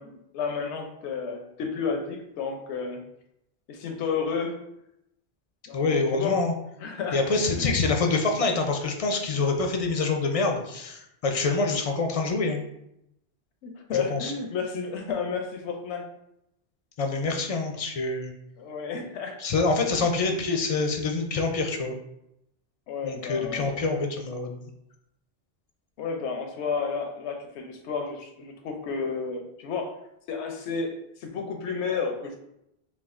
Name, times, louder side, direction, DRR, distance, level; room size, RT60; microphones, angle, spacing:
voice 1, 0.0-3.0 3.7-4.6 5.7-6.4 6.8-7.7 13.6-16.0 18.6-19.4 20.0-20.1 22.9-23.7 26.0-29.9 30.3-32.4, left 5 dB, 85° left, 3 dB, 0.9 m, -32 dB
voice 2, 5.7-6.5 7.1-12.6 13.9-14.3 17.0-18.3 19.4-22.0 23.0-24.6, left 3 dB, 55° left, 3 dB, 0.4 m, -26 dB
5.6 x 2.3 x 2.4 m, 0.81 s
omnidirectional pair, 1.1 m